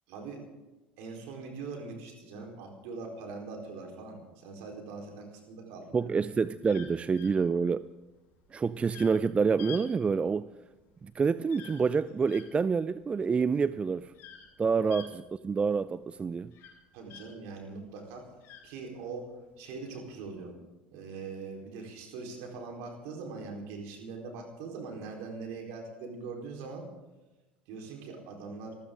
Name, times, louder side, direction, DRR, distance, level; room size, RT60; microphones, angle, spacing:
voice 1, 0.1-0.5 1.0-6.1 16.9-18.3 18.6-20.5 20.9-26.9 27.7-28.7, right 4 dB, 60° right, 4.3 m, -42 dB
voice 2, 5.9-7.9 8.5-10.5 11.0-14.1 14.6-16.5, right 5 dB, 20° right, 0.4 m, -27 dB
sound 1, 6.6-17.6 17.9-19.3 20.0-20.3, left 9 dB, 50° left, 6.1 m, -50 dB
26.0 x 14.0 x 3.9 m
figure-of-eight pair, 70°, 5 cm